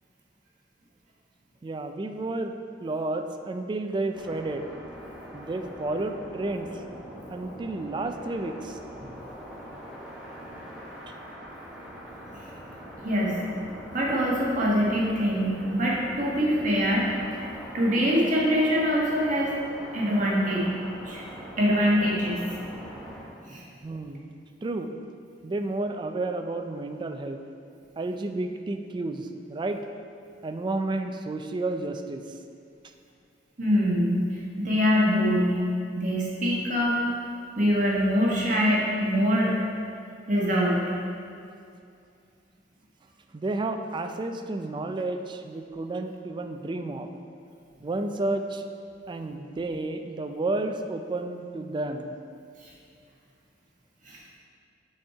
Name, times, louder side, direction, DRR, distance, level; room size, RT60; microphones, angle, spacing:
voice 1, 1.6-2.5 2.8-4.7 5.3-6.7 7.3-8.8 23.8-24.3 24.6-24.9 25.4-27.4 28.0-29.8 30.4-32.2 43.3-47.1 47.8-48.6 49.1-52.2, right 2 dB, 25° right, 6 dB, 0.3 m, -31 dB
sound 1, 4.1-23.2, equal, 5° right, 1.1 m, -42 dB
voice 2, 13.0-13.4 13.9-19.5 19.9-20.7 21.1-21.2 21.6-22.4 23.5-23.6 33.6-35.6 35.9-37.0 37.6-39.6 40.3-40.8 52.6-52.7 54.0-54.2, equal, 45° right, -4 dB, 1.3 m, -24 dB
6.3 x 4.3 x 4.7 m, 2.4 s
head